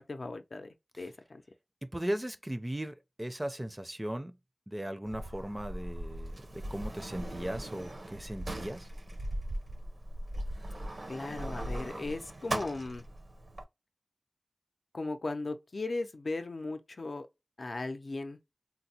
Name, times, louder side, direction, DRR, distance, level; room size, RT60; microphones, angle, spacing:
voice 1, 0.0-1.4 11.1-13.0 14.9-17.3 17.6-18.4, left 2 dB, 80° left, 0.5 m, -37 dB
voice 2, 1.8-4.4 4.7-8.9, right 1 dB, 20° right, 0.4 m, -37 dB
Sliding door, 5.1-13.6, right 1 dB, 70° right, 0.7 m, -39 dB
3.9 x 2.0 x 2.7 m
wide cardioid pair, 60°, 0 cm